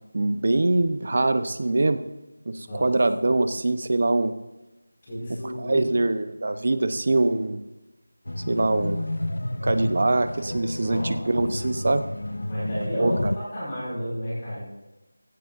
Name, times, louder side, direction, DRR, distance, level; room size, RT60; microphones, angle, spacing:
voice 1, 0.1-2.0 2.5-4.3 5.3-7.6 8.5-9.1 9.6-12.0 13.0-13.3, right 2 dB, 40° right, 10 dB, 0.8 m, -23 dB
voice 2, 5.1-5.8 10.8-11.4 12.5-13.2 13.5-14.6, equal, 25° left, -9 dB, 5.2 m, -32 dB
sound 1, 8.3-13.4, left 1 dB, 80° left, 0.7 m, -30 dB
16.5 x 16.5 x 2.7 m, 1.0 s
figure-of-eight pair, 175°, 0 cm